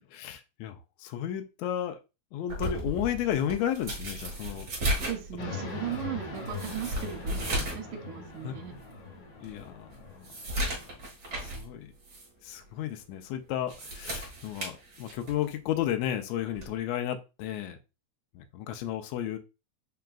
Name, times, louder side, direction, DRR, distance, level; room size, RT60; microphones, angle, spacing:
voice 1, 0.0-2.0 2.3-4.7 8.4-8.5 9.4-10.2 10.8-11.0 11.4-11.9 12.4-17.8 18.4-19.4, left 11 dB, 80° left, 6 dB, 1.7 m, -33 dB
sound 1, 2.5-7.9 8.2-8.3 8.9-9.0 9.4-11.7 12.0-12.3 13.5-15.5 16.5-16.8, right 1 dB, 40° right, 1.7 m, -35 dB
voice 2, 4.8-8.7, right 10 dB, 90° right, 7 dB, 2.2 m, -38 dB
sound 2, 5.4-10.8, left 3 dB, 50° left, 1.5 m, -41 dB
4.9 x 3.4 x 2.3 m, 0.28 s
omnidirectional pair, 3.4 m